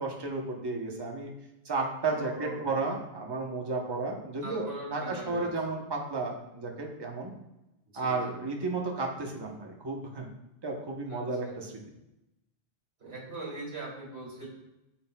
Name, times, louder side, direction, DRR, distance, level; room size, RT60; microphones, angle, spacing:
voice 1, 0.0-1.3 1.6-7.3 7.9-10.3 10.6-11.7, right 3 dB, 25° right, 1 dB, 0.8 m, -33 dB
voice 2, 2.1-2.8 4.4-5.5 7.9-8.2 11.1-11.5 13.0-14.5, right 2 dB, 65° right, -3 dB, 2.3 m, -41 dB
8.5 x 5.7 x 2.2 m, 0.94 s
omnidirectional pair, 1.1 m